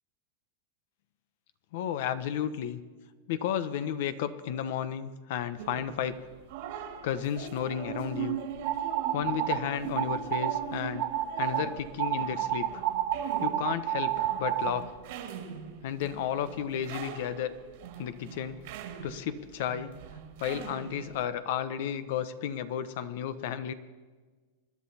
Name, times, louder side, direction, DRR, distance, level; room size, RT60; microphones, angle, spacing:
voice 1, 1.7-2.8 3.3-6.2 7.0-8.4 9.1-11.0 11.4-12.8 13.4-14.9 15.8-17.5 18.0-18.6 19.0-19.9 20.4-23.7, left 9 dB, 65° left, 12 dB, 1.0 m, -33 dB
sound 1, 5.6-21.2, right 8 dB, 65° right, 2.2 m, -41 dB
sound 2, 8.6-9.6 10.0-10.6 11.0-11.6 12.0-14.7, right 13 dB, 50° right, 0.9 m, -29 dB
25.0 x 11.0 x 4.3 m, 1.4 s
supercardioid pair, 130°, 0 cm